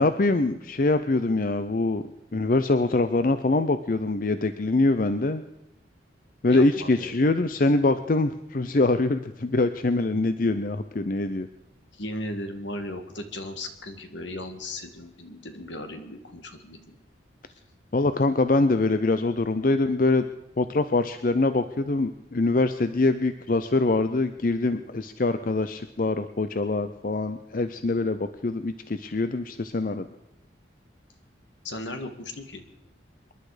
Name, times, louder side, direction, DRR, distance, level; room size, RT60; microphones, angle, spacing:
voice 1, 0.0-2.0 2.3-5.4 6.4-11.5 17.9-20.3 20.6-30.1, left 2 dB, 45° left, 11 dB, 0.6 m, -24 dB
voice 2, 6.5-7.2 11.9-17.0 31.6-32.6, left 1 dB, 75° left, 7 dB, 1.9 m, -36 dB
26.5 x 11.0 x 5.0 m, 0.89 s
head